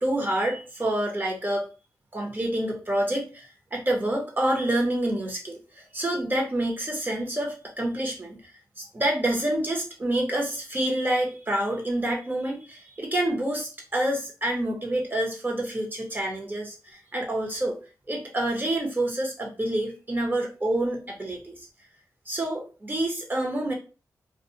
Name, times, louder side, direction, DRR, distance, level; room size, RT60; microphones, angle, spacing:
voice 1, 0.0-1.6 2.1-8.4 8.8-17.8 18.1-21.6 22.3-23.7, right 1 dB, 30° right, 1 dB, 0.9 m, -27 dB
2.4 x 2.3 x 2.7 m, 0.34 s
cardioid pair, 70°, 7 cm